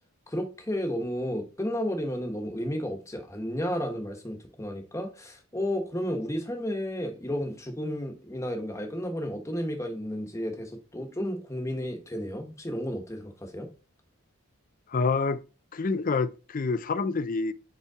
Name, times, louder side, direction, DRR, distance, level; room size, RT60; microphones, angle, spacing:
voice 1, 0.3-13.7, equal, 15° left, 1.1 m, -32 dB
voice 2, 14.9-15.4 15.7-17.5, left 4 dB, 40° left, 0.4 m, -27 dB
5.4 x 5.0 x 3.6 m
head